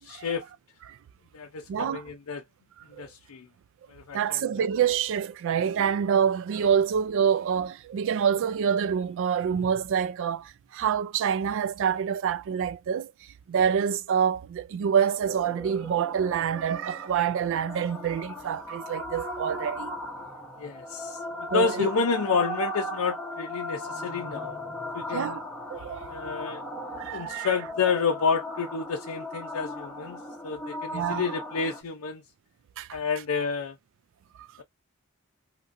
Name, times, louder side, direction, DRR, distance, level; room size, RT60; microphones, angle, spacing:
voice 1, 0.0-0.5 1.3-2.4 3.0-3.5 3.9-4.6 20.6-24.6 24.9-25.4 26.1-26.6 27.0-32.2 32.9-33.8, left 5 dB, 85° left, 0.5 m, -30 dB
voice 2, 1.7-2.0 3.0-3.1 4.1-13.1 13.5-19.9 21.5-21.9 25.1-25.4 25.7-26.1 27.0-27.5 30.9-31.3 32.8-32.9, right 7 dB, 60° right, 0.3 m, -26 dB
sound 1, 15.3-31.8, equal, 10° left, 0.8 m, -37 dB
2.9 x 2.5 x 2.5 m
head